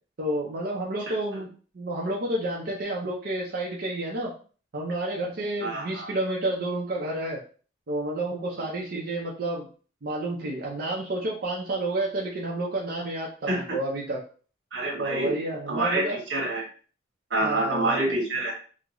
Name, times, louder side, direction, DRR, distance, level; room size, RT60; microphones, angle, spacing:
voice 1, 0.2-1.5 1.7-4.3 4.7-7.4 7.9-9.7 10.0-14.2 15.0-16.2 17.4-18.0, right 1 dB, 55° right, -3 dB, 0.6 m, -30 dB
voice 2, 5.6-6.1 13.5-13.8 14.7-15.3 15.7-16.7 17.3-18.5, right 2 dB, 85° right, -1 dB, 1.2 m, -27 dB
3.7 x 2.1 x 3.0 m, 0.41 s
head